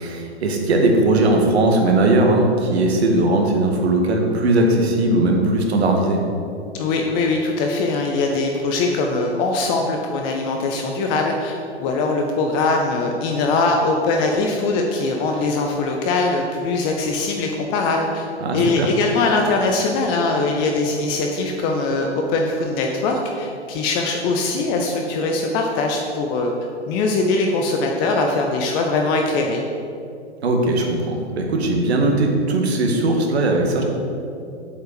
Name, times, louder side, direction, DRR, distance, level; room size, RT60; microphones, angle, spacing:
voice 1, 0.0-6.2 18.4-18.9 30.4-33.8, right 2 dB, 70° right, 2 dB, 1.8 m, -18 dB
voice 2, 6.7-18.3 18.5-26.5 26.9-29.6, left 3 dB, 15° left, 2 dB, 0.3 m, -21 dB
7.9 x 5.4 x 6.8 m, 2.6 s
hypercardioid pair, 125°, 34 cm